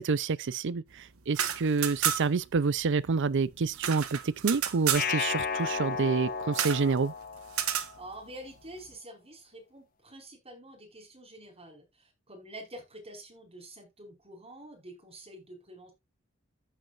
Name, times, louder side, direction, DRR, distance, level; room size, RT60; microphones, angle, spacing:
voice 1, 0.0-7.1, right 4 dB, 60° right, 0.5 m, -28 dB
sound 1, 1.2-2.5 2.7-2.8 3.1-5.1 6.5-6.8 7.5-7.9, right 9 dB, 90° right, 1.4 m, -31 dB
sound 2, 4.9-8.0, left 6 dB, 40° left, 1.3 m, -33 dB
voice 2, 7.9-15.9, right 1 dB, 30° right, 5.1 m, -47 dB
14.5 x 5.5 x 2.5 m
head